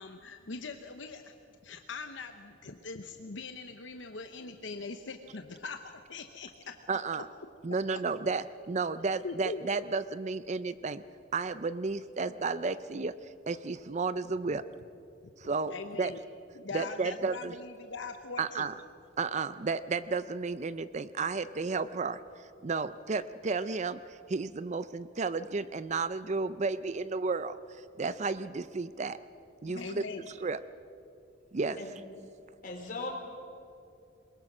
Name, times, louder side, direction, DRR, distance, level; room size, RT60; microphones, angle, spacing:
voice 1, 0.0-1.3 1.6-6.5 8.7-8.8 9.2-9.6 14.5-14.6 15.7-16.2 16.5-18.7 29.8-30.3, left 4 dB, 70° left, 7 dB, 0.9 m, -41 dB
voice 2, 6.9-7.3 7.6-11.0 11.3-13.1 13.5-14.6 15.4-15.7 16.0-16.1 16.7-17.5 18.4-18.7 19.2-22.2 22.6-27.6 28.0-29.2 29.6-30.0 30.4-30.6 31.5-31.8, right 4 dB, 35° right, 14 dB, 0.5 m, -32 dB
voice 3, 29.6-30.0 31.8-32.0 32.6-33.1, left 3 dB, 45° left, 0 dB, 3.8 m, -40 dB
22.5 x 21.0 x 6.1 m, 2.6 s
head